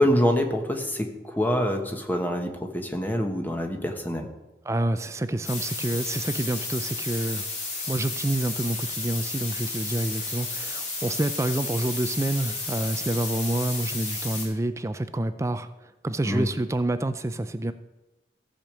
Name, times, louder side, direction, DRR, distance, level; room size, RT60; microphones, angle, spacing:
voice 1, 0.0-4.3 16.2-16.5, left 1 dB, 10° left, 3 dB, 1.2 m, -25 dB
voice 2, 4.6-7.4 7.9-17.7, right 1 dB, 15° right, 11 dB, 0.4 m, -28 dB
sound 1, 5.4-14.4, left 3 dB, 40° left, 3.3 m, -32 dB
15.0 x 5.1 x 7.5 m, 1.0 s
head